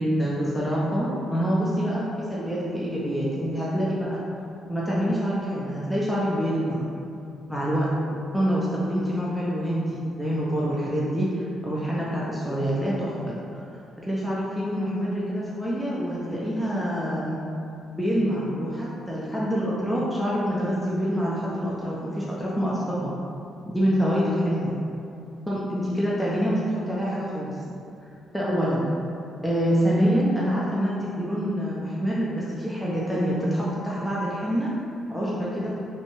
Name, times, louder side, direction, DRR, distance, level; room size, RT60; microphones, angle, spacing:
voice 1, 0.0-4.2 4.7-6.8 7.5-7.9 8.3-13.7 14.1-17.4 18.0-23.1 23.7-24.7 25.5-27.6 28.0-28.1 28.3-28.9 29.4-34.7 35.1-35.7, equal, ahead, -7 dB, 0.4 m, -26 dB
2.6 x 2.1 x 2.9 m, 2.6 s
cardioid pair, 90°, 0 cm